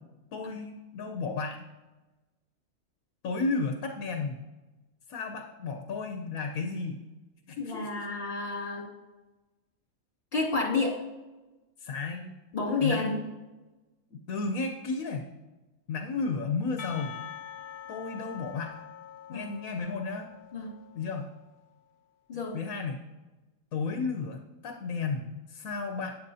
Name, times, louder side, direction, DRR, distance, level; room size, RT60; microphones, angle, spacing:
voice 1, 0.3-1.6 3.2-4.4 5.1-7.0 7.5-8.1 11.8-12.3 12.8-13.1 14.1-15.3 15.9-17.2 17.9-18.8 19.3-20.3 20.9-21.3 22.5-23.0 23.7-26.2, left 4 dB, 85° left, 4 dB, 1.2 m, -33 dB
voice 2, 7.6-8.9 10.3-11.0 12.5-13.2 19.3-19.4 20.5-20.7 22.3-22.6, left 3 dB, 40° left, -4 dB, 2.6 m, -30 dB
Percussion / Church bell, 16.8-21.3, left 9 dB, 65° left, 0.7 m, -45 dB
13.0 x 9.5 x 2.7 m, 1.1 s
omnidirectional pair, 1.4 m